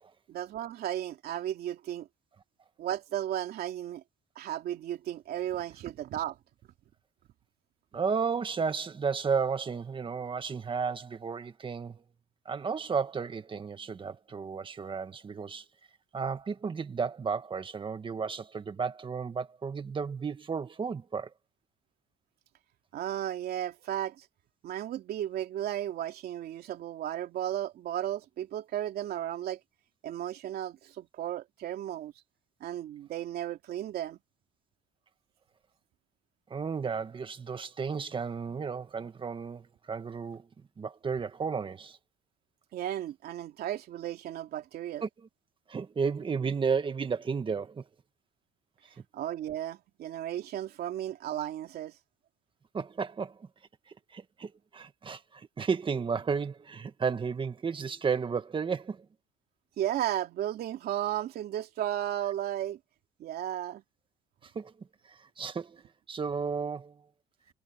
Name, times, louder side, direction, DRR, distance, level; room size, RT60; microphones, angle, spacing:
voice 1, 0.3-2.1 2.8-4.0 4.3-6.4 22.9-24.2 24.6-29.6 30.0-32.1 32.6-34.2 42.7-45.0 49.1-51.9 59.8-62.8 63.2-63.8, right 12 dB, 65° right, 2.9 m, -34 dB
voice 2, 7.9-12.0 12.4-15.6 16.1-21.3 36.5-40.5 40.8-42.0 45.0-45.3 45.7-47.8 52.7-53.5 54.1-59.1 64.4-65.8 66.1-67.0, right 5 dB, 30° right, 1.8 m, -33 dB
cardioid pair, 110°, 17 cm